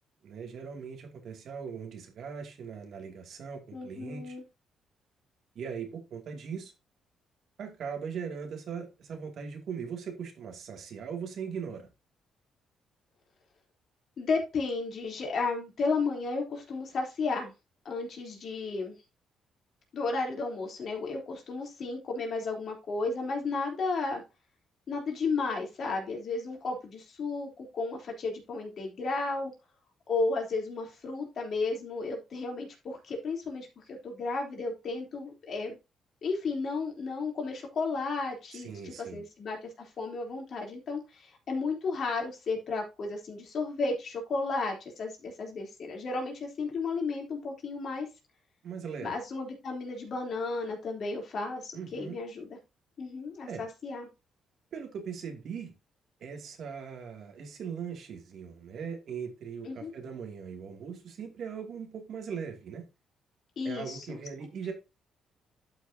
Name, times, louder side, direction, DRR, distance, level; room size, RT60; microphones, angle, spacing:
voice 1, 0.2-4.4 5.5-6.7 7.6-11.9 38.5-39.2 48.6-49.1 51.7-52.2 53.5-53.6 54.7-55.7 56.2-62.9 63.6-64.7, right 6 dB, 65° right, 3 dB, 2.6 m, -40 dB
voice 2, 3.7-4.4 14.2-17.5 17.9-18.9 19.9-24.2 24.9-29.5 30.1-35.8 36.2-48.1 49.0-52.5 53.0-54.1 59.6-59.9 63.6-64.2, left 3 dB, 55° left, 1 dB, 3.5 m, -33 dB
11.5 x 6.1 x 2.8 m, 0.26 s
cardioid pair, 90°, 0 cm